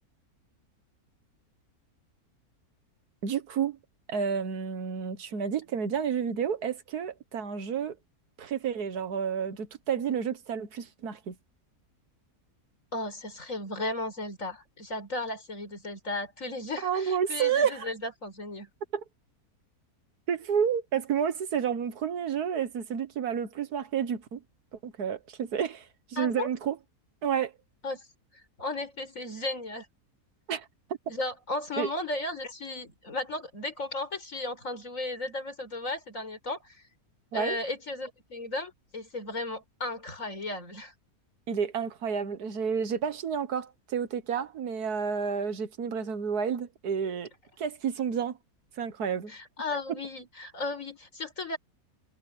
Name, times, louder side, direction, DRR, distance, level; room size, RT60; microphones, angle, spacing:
voice 1, 3.2-3.8 4.1-8.0 8.4-11.4 16.8-17.9 18.9-19.0 20.3-24.4 24.8-26.8 27.2-27.5 30.5-30.7 31.8-31.9 37.3-37.6 41.5-47.3 47.6-48.4 48.8-49.3 49.9-50.0, right 7 dB, 90° right, 1.8 m, -30 dB
voice 2, 12.9-18.7 26.2-26.5 27.8-28.1 28.6-29.9 31.1-36.8 37.3-40.9 49.3-51.6, left 2 dB, 60° left, 5.2 m, -35 dB
omnidirectional pair, 1.6 m